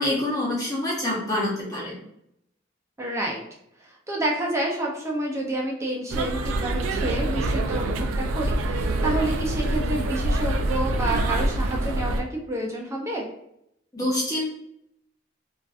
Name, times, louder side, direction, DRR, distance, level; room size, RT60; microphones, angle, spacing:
voice 1, 0.0-2.0 13.9-14.4, left 1 dB, 20° left, -5 dB, 0.7 m, -26 dB
voice 2, 3.0-3.4 3.8-13.3, right 1 dB, 15° right, -1 dB, 0.4 m, -29 dB
sound 1, 6.1-12.2, right 1 dB, 90° right, 0.3 m, -25 dB
2.4 x 2.3 x 2.3 m, 0.76 s
head